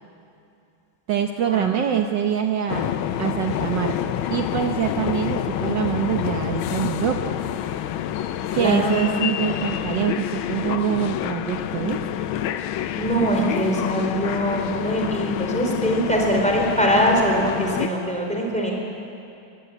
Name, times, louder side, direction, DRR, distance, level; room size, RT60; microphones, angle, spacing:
voice 1, 1.1-4.0 4.3-7.4 8.5-12.1, right 9 dB, 65° right, 4 dB, 1.5 m, -25 dB
sound 1, 2.7-17.9, left 10 dB, 80° left, 1.5 m, -27 dB
voice 2, 8.5-9.9 13.0-18.7, equal, 5° left, -1 dB, 4.1 m, -23 dB
22.0 x 16.0 x 9.2 m, 2.6 s
omnidirectional pair, 2.2 m